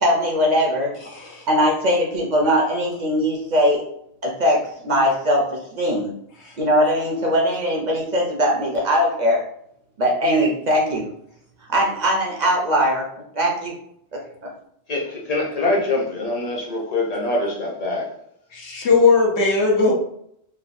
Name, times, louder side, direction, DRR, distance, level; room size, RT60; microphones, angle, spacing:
voice 1, 0.0-0.9 1.5-3.9 4.2-6.1 6.6-9.4 10.0-11.1 11.7-13.7 14.1-14.2, equal, 50° right, -1 dB, 0.6 m, -20 dB
voice 2, 1.1-1.4 6.4-6.5 18.5-19.9, left 4 dB, 90° left, -1 dB, 1.1 m, -18 dB
voice 3, 14.9-18.1, left 2 dB, 40° left, -1 dB, 0.7 m, -24 dB
3.2 x 2.2 x 2.5 m, 0.70 s
omnidirectional pair, 1.1 m